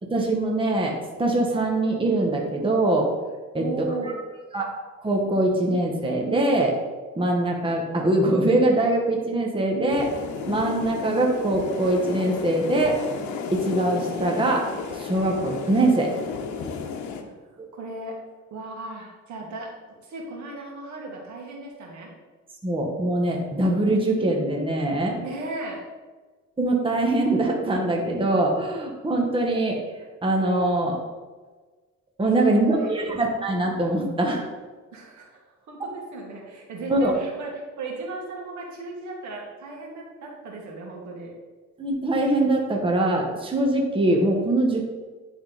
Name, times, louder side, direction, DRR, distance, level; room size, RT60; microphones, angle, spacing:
voice 1, 0.0-3.1 3.5-3.6 4.0-4.1 4.5-4.7 5.0-6.7 7.2-10.1 10.5-13.0 13.5-14.6 14.9-16.1 22.6-25.2 26.6-29.8 30.2-31.0 32.2-34.4 35.8-35.9 36.9-37.1 41.8-44.9, right 2 dB, 20° right, 0 dB, 1.1 m, -23 dB
voice 2, 3.6-4.1 17.2-17.3 17.7-18.2 18.5-19.7 20.0-22.1 25.2-25.8 32.4-32.9 34.9-35.3 35.7-41.3, right 3 dB, 80° right, -1 dB, 1.8 m, -36 dB
sound 1, 9.9-17.2, left 5 dB, 85° left, 0.8 m, -33 dB
10.0 x 3.7 x 3.9 m, 1.3 s
cardioid pair, 115°, 29 cm